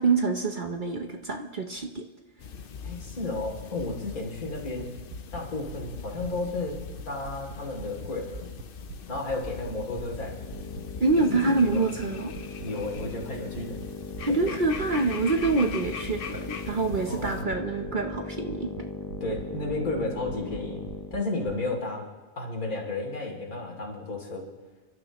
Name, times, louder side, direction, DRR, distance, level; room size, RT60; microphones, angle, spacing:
voice 1, 0.0-2.0 11.0-12.3 14.2-18.7, right 3 dB, 45° right, 4 dB, 0.8 m, -26 dB
sound 1, 2.4-17.4, left 6 dB, 50° left, 0.7 m, -41 dB
voice 2, 2.8-4.9 5.3-6.8 7.0-8.4 9.1-10.4 11.2-11.8 12.6-13.8 14.3-14.5 17.1-17.4 19.2-20.8 21.1-22.0 22.4-24.5, left 2 dB, 85° left, -1 dB, 3.3 m, -33 dB
sound 2, 4.5-8.6 8.9-12.0 12.3-12.7 12.9-13.3 13.5-13.9 14.1-14.5 14.8-15.1 15.4-15.7 16.1-16.4 16.7-17.0 17.2-17.6 17.8-18.2 18.5-19.4 19.7-20.0 20.3-20.6 20.9-21.5, right 8 dB, 70° right, 1.2 m, -42 dB
sound 3, 10.2-21.3, left 3 dB, 35° left, 0.3 m, -39 dB
29.5 x 12.0 x 3.0 m, 1.3 s
omnidirectional pair, 1.5 m